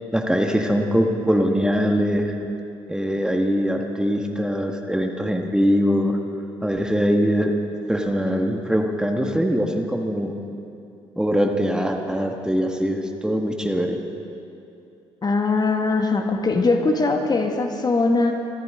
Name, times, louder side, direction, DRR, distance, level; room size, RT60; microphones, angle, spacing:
voice 1, 0.1-2.3 2.9-6.2 6.6-7.5 7.9-10.3 11.2-14.0, equal, 5° right, 3 dB, 1.6 m, -22 dB
voice 2, 15.2-18.3, left 3 dB, 30° left, 4 dB, 1.8 m, -21 dB
25.0 x 14.0 x 3.8 m, 2.6 s
hypercardioid pair, 55°, 13 cm